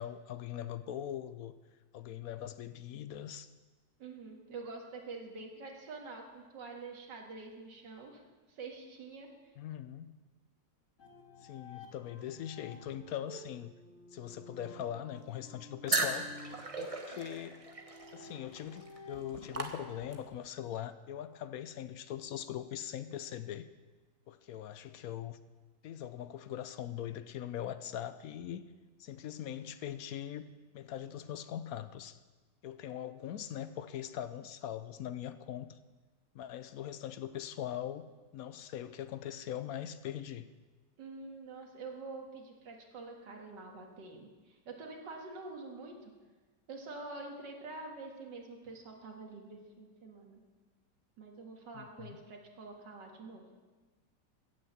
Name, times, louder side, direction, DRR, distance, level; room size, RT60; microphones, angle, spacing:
voice 1, 0.0-1.5 1.9-3.5 9.6-10.2 11.4-13.7 14.1-16.3 16.8-17.6 18.1-23.7 24.3-25.4 25.8-28.7 29.0-30.5 30.7-32.2 32.6-35.8 36.3-38.1 38.3-40.5 51.7-52.2, left 10 dB, 70° left, 12 dB, 1.0 m, -41 dB
voice 2, 4.0-8.2 8.5-9.3 41.0-46.1 46.7-50.4 51.2-53.5, right 3 dB, 85° right, 1 dB, 2.3 m, -46 dB
sound 1, 11.0-20.2, left 2 dB, 50° left, 1.8 m, -53 dB
sound 2, 15.9-20.4, right 3 dB, 25° right, 1.0 m, -37 dB
16.5 x 6.6 x 7.2 m, 1.3 s
omnidirectional pair, 1.8 m